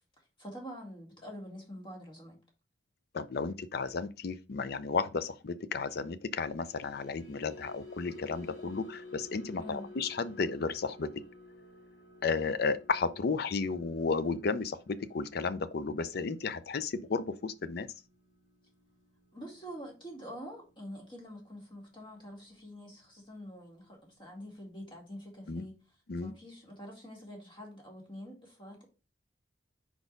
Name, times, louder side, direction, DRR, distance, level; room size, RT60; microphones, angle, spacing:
voice 1, 0.4-2.4 9.6-9.9 19.3-25.7 26.2-28.8, equal, 25° left, 2.0 m, -46 dB
voice 2, 3.1-11.1 12.2-17.9 25.5-25.7 26.1-26.3, left 4 dB, 60° left, 0.5 m, -33 dB
sound 1, 6.5-22.9 23.2-23.5 23.9-24.1, left 2 dB, 85° left, 2.1 m, -53 dB
4.7 x 4.1 x 5.2 m
head